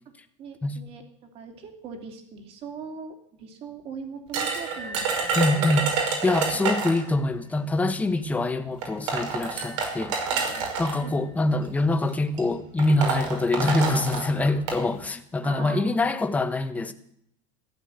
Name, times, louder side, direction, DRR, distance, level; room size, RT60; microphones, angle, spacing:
voice 1, 0.4-1.0 1.3-5.8 6.5-6.7 10.3-10.8 11.0-11.5 15.4-16.2, right 5 dB, 35° right, 5 dB, 2.9 m, -40 dB
sound 1, 4.3-7.1 8.2-8.3 8.8-11.0 11.9-12.1 12.4-12.5 12.8-14.8, right 5 dB, 80° right, 5.5 m, -28 dB
voice 2, 5.4-5.9 6.2-10.2 10.8-16.9, left 2 dB, 10° left, 9 dB, 1.0 m, -24 dB
14.5 x 10.5 x 8.0 m, 0.72 s
supercardioid pair, 150°, 16 cm